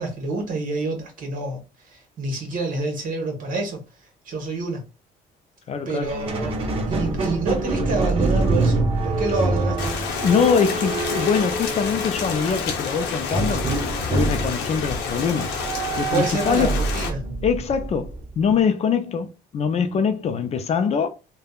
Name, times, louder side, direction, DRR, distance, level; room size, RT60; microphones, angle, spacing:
voice 1, 0.0-1.6 1.9-3.8 4.2-4.8 5.9-9.9 16.1-17.3, right 3 dB, 50° right, 1.1 m, -27 dB
voice 2, 5.7-6.1 10.2-15.5 16.0-16.8 17.4-21.1, left 6 dB, 40° left, 0.4 m, -23 dB
Squeak, 6.0-12.4 13.3-18.5, right 2 dB, 35° right, 0.8 m, -25 dB
Rain, 9.8-17.1, left 5 dB, 90° left, 0.8 m, -29 dB
3.3 x 2.2 x 2.3 m
cardioid pair, 110°, 17 cm